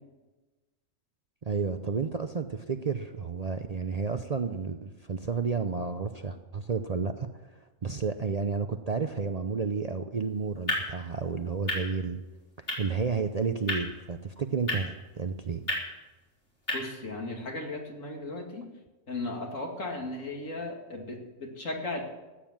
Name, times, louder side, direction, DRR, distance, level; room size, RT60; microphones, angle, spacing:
voice 1, 1.4-7.3 7.8-12.2 12.8-15.6, right 5 dB, 45° right, 7 dB, 0.5 m, -31 dB
sound 1, 10.1-16.8, left 1 dB, 45° left, 4.1 m, -37 dB
voice 2, 16.7-18.7 19.1-22.0, left 2 dB, 75° left, 1 dB, 2.8 m, -36 dB
14.5 x 9.1 x 7.4 m, 1.1 s
omnidirectional pair, 1.3 m